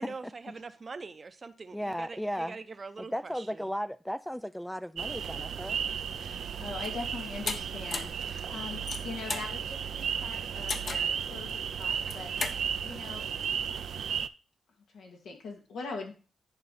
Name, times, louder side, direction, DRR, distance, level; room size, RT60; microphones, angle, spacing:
voice 1, 0.0-3.6, right 4 dB, 40° right, 0.7 m, -43 dB
voice 2, 1.7-2.6 3.0-5.8, equal, 5° left, 0.3 m, -35 dB
sound 1, 5.0-14.3, right 8 dB, 75° right, 0.4 m, -34 dB
voice 3, 6.2-13.3 13.9-14.2 14.9-16.1, left 4 dB, 85° left, 2.5 m, -42 dB
sound 2, 7.5-7.6 7.9-8.2 8.7-9.5 10.7-11.1 11.9-12.6, left 4 dB, 50° left, 1.0 m, -34 dB
10.5 x 4.7 x 4.2 m
cardioid pair, 75°, 0 cm